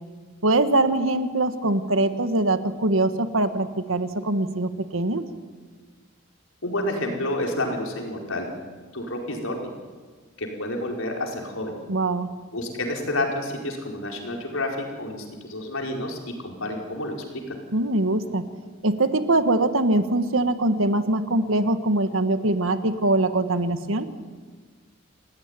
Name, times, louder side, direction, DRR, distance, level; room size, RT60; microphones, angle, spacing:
voice 1, 0.4-5.2 11.9-12.3 17.7-18.5 18.8-24.1, right 2 dB, 80° right, 9 dB, 1.7 m, -22 dB
voice 2, 6.6-8.5 8.9-9.7 10.4-11.7 12.5-17.4, left 1 dB, 85° left, 1 dB, 5.0 m, -29 dB
28.0 x 17.5 x 9.9 m, 1.5 s
head